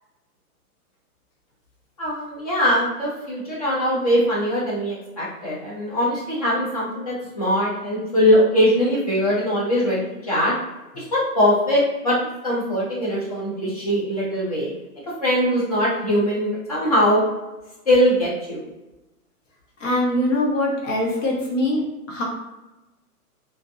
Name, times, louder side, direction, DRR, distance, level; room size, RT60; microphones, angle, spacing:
voice 1, 2.0-10.6 10.9-12.2 12.4-14.7 15.2-17.2 17.9-18.6, equal, 25° left, -6 dB, 0.5 m, -21 dB
voice 2, 19.8-21.8 22.1-22.2, left 1 dB, 55° left, -1 dB, 1.0 m, -22 dB
2.6 x 2.0 x 2.5 m, 1.0 s
hypercardioid pair, 155°, 46 cm